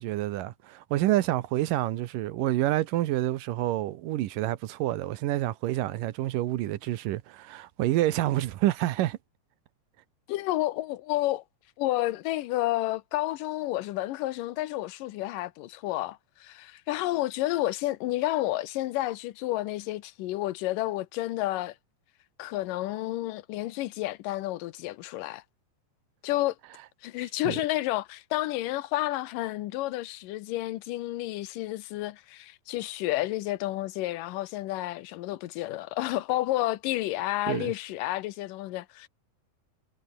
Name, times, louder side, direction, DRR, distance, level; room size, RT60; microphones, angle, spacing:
voice 1, 0.0-9.2 27.4-27.6 37.5-37.7, right 15 dB, 75° right, 2.5 m, -28 dB
voice 2, 10.3-11.4 11.8-21.8 22.4-25.4 26.2-26.6 27.0-39.1, left 16 dB, 75° left, 2.4 m, -30 dB
omnidirectional pair, 4.1 m